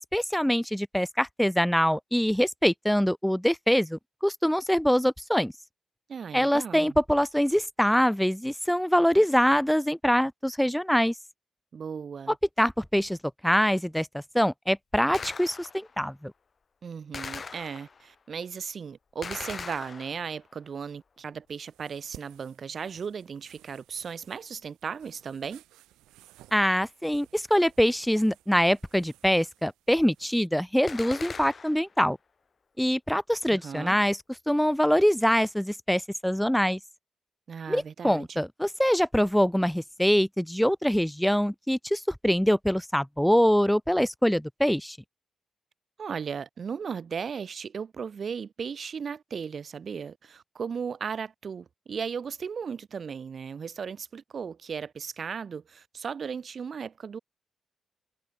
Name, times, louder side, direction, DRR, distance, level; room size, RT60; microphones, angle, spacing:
voice 1, 0.1-5.5 6.3-11.1 12.6-13.2 13.4-16.3 26.5-32.2 32.8-34.2 34.5-36.8 37.7-45.0, equal, 5° left, 0.4 m, -24 dB
voice 2, 6.1-6.9 11.7-12.3 16.8-25.6 33.5-34.0 37.5-38.4 46.0-57.2, right 6 dB, 60° right, 1.4 m, -36 dB
Gunshot gunfire, 15.1-16.0 17.1-18.1 19.2-20.5 30.9-31.9, left 5 dB, 50° left, 1.6 m, -40 dB
sound 1, 21.5-30.5, right 16 dB, 90° right, 4.5 m, -57 dB
supercardioid pair, 45°, 0 cm